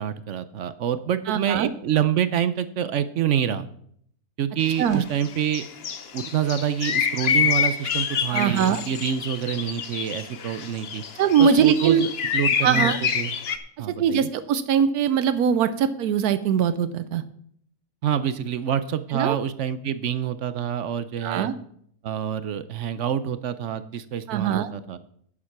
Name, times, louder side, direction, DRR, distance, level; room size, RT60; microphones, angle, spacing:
voice 1, 0.0-3.7 4.4-5.6 6.1-11.0 11.4-13.3 13.8-14.3 18.0-21.5 22.0-25.0, right 9 dB, 65° right, 13 dB, 0.8 m, -27 dB
voice 2, 1.3-1.7 4.8-5.0 8.3-8.8 11.2-12.0 12.6-13.0 13.9-17.2 19.1-19.4 21.2-21.5 24.3-24.7, right 7 dB, 85° right, 13 dB, 1.2 m, -21 dB
sound 1, 4.6-4.9 5.2-13.6, left 7 dB, 50° left, 0.9 m, -27 dB
11.0 x 7.3 x 5.9 m, 0.66 s
omnidirectional pair, 1.6 m